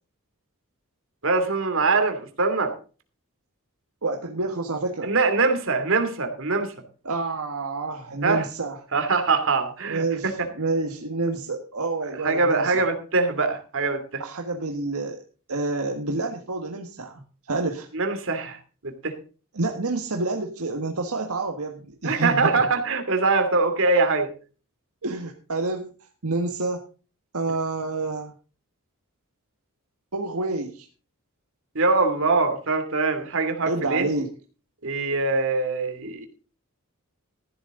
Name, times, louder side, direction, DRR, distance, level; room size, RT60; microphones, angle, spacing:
voice 1, 1.2-2.7 5.0-6.7 8.2-8.5 8.9-10.3 12.2-14.2 17.9-18.6 18.8-19.1 22.0-24.3 31.7-34.1 34.8-36.2, right 3 dB, 60° right, 7 dB, 2.8 m, -23 dB
voice 2, 4.0-5.1 7.1-8.8 9.8-12.8 14.2-15.2 15.5-17.9 19.5-22.6 25.0-25.9 26.2-26.8 27.3-28.3 30.1-30.9 33.6-34.3, right 3 dB, 80° right, 3 dB, 1.6 m, -28 dB
15.0 x 11.5 x 3.8 m, 0.37 s
head